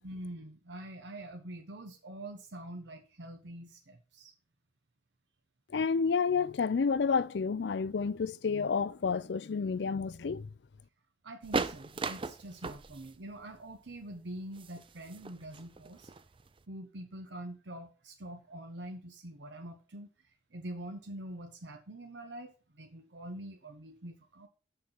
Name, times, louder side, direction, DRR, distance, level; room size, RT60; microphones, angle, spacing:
voice 1, 0.0-4.3 11.2-16.1 16.7-24.5, right 1 dB, 75° right, 1.0 m, -45 dB
voice 2, 5.7-10.5, left 5 dB, 70° left, 0.4 m, -30 dB
sound 1, 11.4-16.6, right 3 dB, 30° right, 0.5 m, -38 dB
6.6 x 5.8 x 6.6 m
head